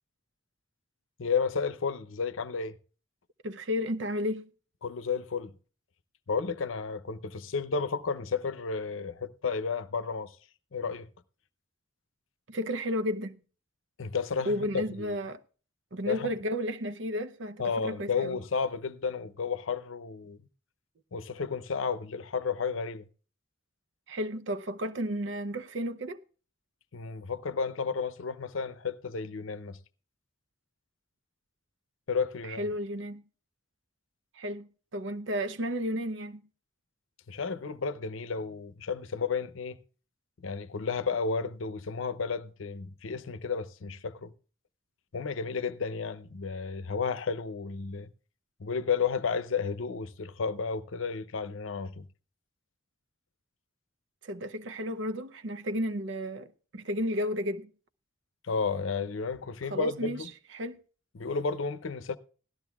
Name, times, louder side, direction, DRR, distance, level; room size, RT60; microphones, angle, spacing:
voice 1, 1.2-2.8 4.8-5.5 6.3-10.4 10.7-11.1 14.0-15.2 16.0-16.3 17.6-20.5 21.1-23.1 26.9-29.8 32.1-32.7 37.3-39.8 40.4-44.3 45.1-48.1 48.6-52.1 58.4-60.3 61.1-62.2, left 5 dB, 85° left, 0.6 m, -32 dB
voice 2, 3.4-4.5 12.5-13.4 14.5-15.4 15.9-18.4 24.1-26.2 32.5-33.2 34.3-36.4 54.2-57.7 59.7-60.2 60.5-60.8, equal, 70° right, 0.7 m, -33 dB
17.5 x 12.5 x 2.3 m
head